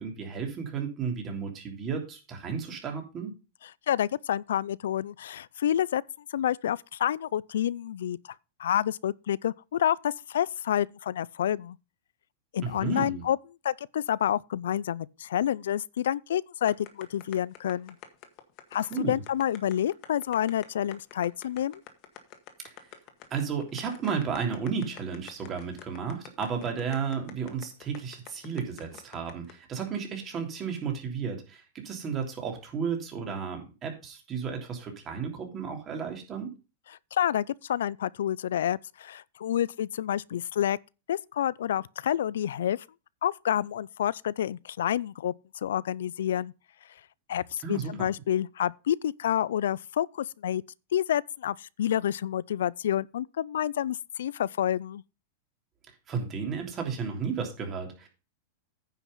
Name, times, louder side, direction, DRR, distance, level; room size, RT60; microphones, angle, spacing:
voice 1, 0.0-3.3 12.6-13.2 18.8-19.2 22.6-22.7 23.3-36.5 47.6-48.1 56.1-58.1, right 6 dB, 25° right, 3.1 m, -33 dB
voice 2, 3.9-6.0 6.3-8.2 8.6-11.8 12.5-13.4 13.6-18.0 18.7-21.8 37.1-40.8 41.1-42.8 43.2-45.3 45.6-46.5 47.3-50.6 50.9-55.0, left 10 dB, 85° left, 0.4 m, -28 dB
sound 1, 16.7-29.5, left 12 dB, 45° left, 1.8 m, -46 dB
9.7 x 5.8 x 5.4 m
supercardioid pair, 140°, 0 cm